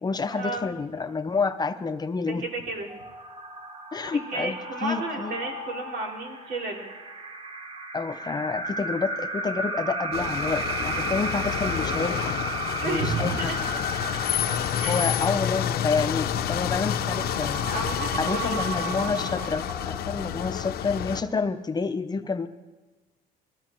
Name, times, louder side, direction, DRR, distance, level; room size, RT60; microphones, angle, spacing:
voice 1, 0.0-2.4 3.9-5.4 7.9-12.3 12.8-13.5 14.8-17.6 18.2-22.5, left 4 dB, 25° left, 8 dB, 0.8 m, -29 dB
voice 2, 2.3-2.9 4.3-6.9 12.8-13.6 14.5-15.1 17.7-18.6, right 2 dB, 75° right, 0 dB, 3.7 m, -32 dB
sound 1, 2.9-20.3, right 2 dB, 30° right, 1.7 m, -34 dB
sound 2, 10.1-21.2, left 10 dB, 65° left, 0.8 m, -29 dB
21.0 x 15.5 x 4.5 m, 1.2 s
cardioid pair, 110°, 17 cm